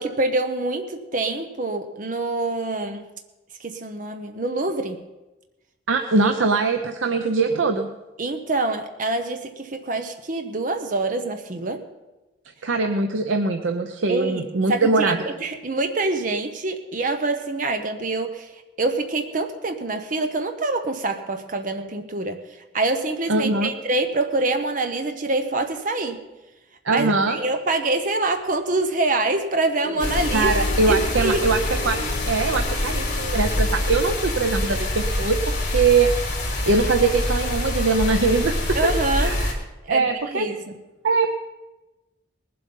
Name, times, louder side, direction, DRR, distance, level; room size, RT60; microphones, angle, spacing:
voice 1, 0.0-3.0 3.6-5.0 6.2-6.3 8.2-11.8 14.1-18.5 18.8-22.4 22.7-26.2 26.9-30.5 30.9-31.4 38.7-39.4 39.9-40.7, right 2 dB, 40° right, 6 dB, 0.8 m, -25 dB
voice 2, 5.9-7.9 12.6-15.2 23.3-23.7 26.8-27.4 30.3-36.1 36.6-38.8 39.2-39.6 39.9-40.5 41.0-41.3, right 4 dB, 80° right, 5 dB, 0.8 m, -22 dB
Piano, 29.8-34.8, left 2 dB, 60° left, 2.6 m, -36 dB
sound 1, 30.0-39.5, left 1 dB, 40° left, 3.5 m, -25 dB
20.0 x 7.7 x 5.5 m, 1.1 s
head